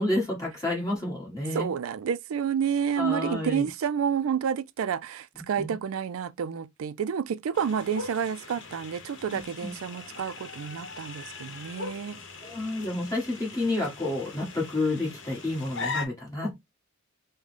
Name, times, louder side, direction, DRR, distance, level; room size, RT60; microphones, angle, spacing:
voice 1, 0.0-1.7 3.0-3.7 5.3-5.8 9.3-9.8 12.4-16.6, left 2 dB, 15° left, 1.5 m, -30 dB
voice 2, 1.5-12.2, right 7 dB, 80° right, 0.4 m, -29 dB
sound 1, 7.5-16.1, left 4 dB, 60° left, 0.9 m, -40 dB
5.0 x 2.2 x 3.2 m
head